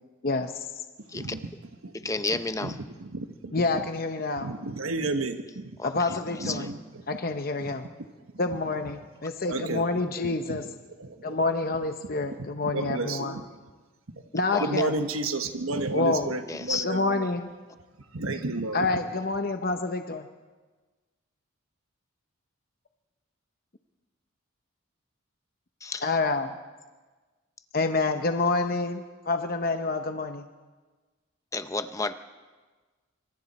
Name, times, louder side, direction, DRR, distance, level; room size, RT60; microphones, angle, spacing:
voice 1, 0.2-0.6 3.5-4.5 5.8-6.7 7.1-7.9 8.4-10.6 11.2-13.4 14.3-15.0 15.9-16.4 16.8-17.5 18.7-20.3 26.0-26.5 27.7-30.5, left 3 dB, 45° left, 6 dB, 0.8 m, -28 dB
voice 2, 1.9-2.8 5.8-6.7 14.5-14.7 16.5-16.9 25.8-26.1 31.5-32.1, left 3 dB, 15° left, 10 dB, 0.6 m, -31 dB
voice 3, 2.6-3.5 4.4-5.7 6.1-6.8 7.7-7.8 9.5-9.9 10.5-10.6 11.0-11.4 12.3-12.4 12.7-13.3 14.6-17.3 18.1-18.9, right 2 dB, 85° right, 7 dB, 1.2 m, -31 dB
26.0 x 24.5 x 4.2 m, 1.3 s
head